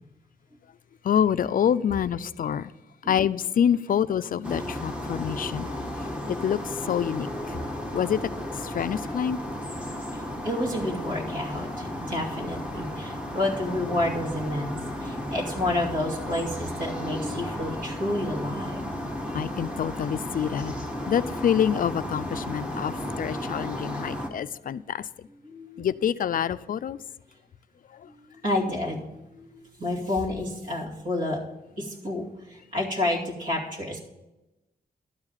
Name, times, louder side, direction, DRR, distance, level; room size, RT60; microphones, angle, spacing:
voice 1, 1.0-2.7 3.1-5.7 6.3-6.6 6.8-7.3 7.9-8.2 8.6-9.4 19.3-20.7 21.1-25.1 25.8-27.0, left 8 dB, 60° left, 14 dB, 0.4 m, -26 dB
sound 1, 4.4-24.3, left 1 dB, 5° right, 1.4 m, -34 dB
voice 2, 10.1-18.9 25.4-25.9 28.1-31.4 31.8-34.0, left 1 dB, 55° right, -4 dB, 2.5 m, -30 dB
12.5 x 4.9 x 8.7 m, 0.96 s
wide cardioid pair, 160°, 16 cm